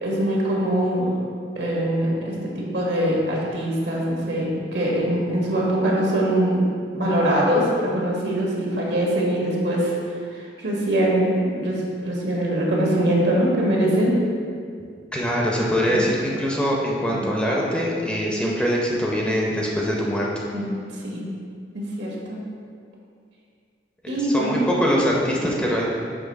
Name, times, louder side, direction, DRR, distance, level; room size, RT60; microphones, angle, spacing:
voice 1, 0.0-1.1 1.5-6.6 6.9-9.9 10.3-14.2 15.8-16.1 17.1-17.4 20.5-20.8 21.0-21.3 21.7-22.4 24.1-24.7, right 1 dB, 70° right, -4 dB, 1.4 m, -23 dB
voice 2, 15.1-20.3 24.2-25.8, equal, 5° left, -3 dB, 0.7 m, -23 dB
6.1 x 3.1 x 5.3 m, 2.2 s
head